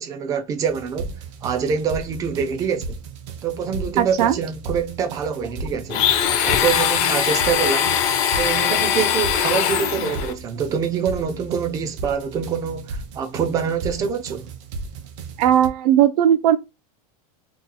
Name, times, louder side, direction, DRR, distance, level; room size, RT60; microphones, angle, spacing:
voice 1, 0.0-3.0 3.4-6.0 6.4-8.0 8.3-14.5, right 7 dB, 20° right, 0.4 m, -25 dB
sound 1, 0.6-15.7, right 4 dB, 55° right, 0.7 m, -35 dB
voice 2, 4.0-4.3 15.4-16.6, right 10 dB, 85° right, 0.5 m, -17 dB
Domestic sounds home sounds, 5.9-10.3, left 9 dB, 40° left, 0.5 m, -21 dB
2.9 x 2.3 x 3.8 m
supercardioid pair, 165°, 20 cm